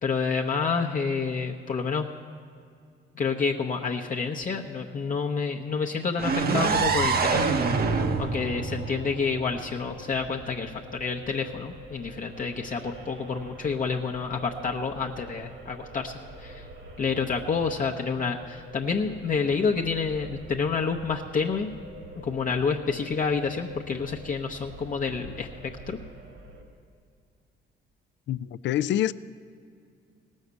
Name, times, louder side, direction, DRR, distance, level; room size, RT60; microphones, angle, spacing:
voice 1, 0.0-2.1 3.2-7.6 7.9-16.6 17.0-21.7 22.2-26.0, left 5 dB, 45° left, 0.8 m, -29 dB
sound 1, 6.2-10.0, right 4 dB, 50° right, 0.9 m, -26 dB
sound 2, 6.7-26.6, right 2 dB, 80° right, 2.7 m, -43 dB
voice 2, 28.3-29.1, left 12 dB, 65° left, 0.4 m, -26 dB
17.5 x 6.4 x 8.2 m
cardioid pair, 90°, 20 cm